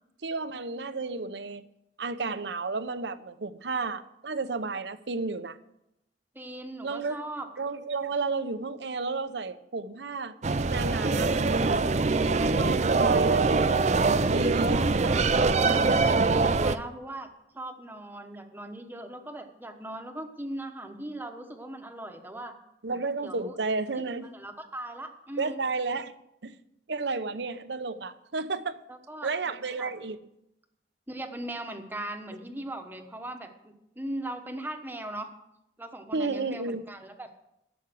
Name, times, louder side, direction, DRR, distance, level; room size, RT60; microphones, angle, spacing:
voice 1, 0.2-1.6 2.0-5.6 6.8-7.2 7.6-10.3 10.7-13.9 14.3-15.1 15.6-15.8 16.4-16.6 22.8-24.3 25.4-26.1 26.4-26.6 26.9-28.8 29.2-30.2 36.1-36.8, right 3 dB, 75° right, 12 dB, 0.8 m, -32 dB
voice 2, 6.3-7.5 15.0-22.6 23.2-23.6 23.9-25.6 28.9-29.9 31.1-35.3 35.8-37.3, right 1 dB, 10° right, 5 dB, 1.1 m, -39 dB
sound 1, 10.4-16.8, right 3 dB, 40° right, 0.5 m, -23 dB
12.5 x 7.2 x 7.7 m, 0.83 s
head